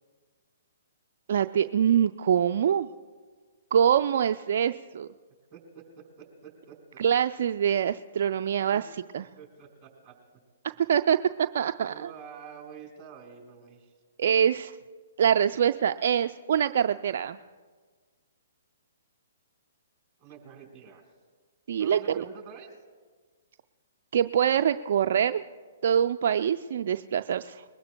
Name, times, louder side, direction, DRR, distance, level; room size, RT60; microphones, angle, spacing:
voice 1, 1.3-2.9 3.7-5.1 7.0-8.8 9.1-9.2 10.9-11.9 14.2-14.7 15.2-17.4 21.7-22.2 24.1-25.4 25.8-27.6, right 8 dB, 60° right, 8 dB, 0.3 m, -24 dB
voice 2, 5.5-7.0 8.7-8.8 9.4-10.1 11.8-13.9 20.2-21.0 21.8-22.7, right 7 dB, 20° right, 0 dB, 4.4 m, -47 dB
21.5 x 19.5 x 2.2 m, 1.5 s
hypercardioid pair, 130°, 0 cm